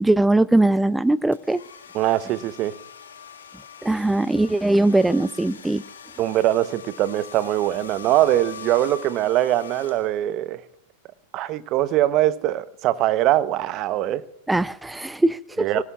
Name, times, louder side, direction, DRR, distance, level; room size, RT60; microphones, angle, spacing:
voice 1, 0.0-1.6 3.8-5.8 14.5-15.7, right 2 dB, 5° right, 0.6 m, -20 dB
sound 1, 1.3-10.5, left 7 dB, 80° left, 2.0 m, -43 dB
voice 2, 1.9-2.7 6.2-10.6 11.3-14.2 15.6-15.8, right 14 dB, 45° right, 0.9 m, -22 dB
25.5 x 18.0 x 2.4 m
hypercardioid pair, 95°, 0 cm